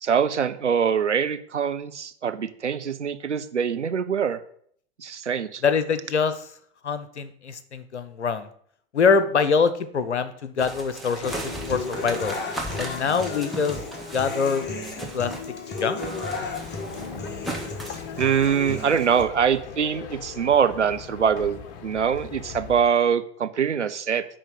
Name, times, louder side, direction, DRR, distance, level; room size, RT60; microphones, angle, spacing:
voice 1, 0.0-4.4 5.0-5.6 18.2-24.3, right 7 dB, 90° right, 10 dB, 0.7 m, -23 dB
voice 2, 5.6-6.5 6.8-8.5 8.9-12.4 12.8-13.8 14.1-14.7 15.1-15.3 15.8-16.0, left 5 dB, 80° left, 13 dB, 0.8 m, -24 dB
sound 1, 10.6-15.5 15.8-18.1, right 1 dB, ahead, 1.8 m, -37 dB
Human voice / Acoustic guitar, 11.2-19.2, left 3 dB, 30° left, 1.6 m, -34 dB
sound 2, 16.3-22.8, left 7 dB, 55° left, 1.0 m, -40 dB
10.0 x 3.6 x 6.9 m, 0.63 s
figure-of-eight pair, 80°, 34 cm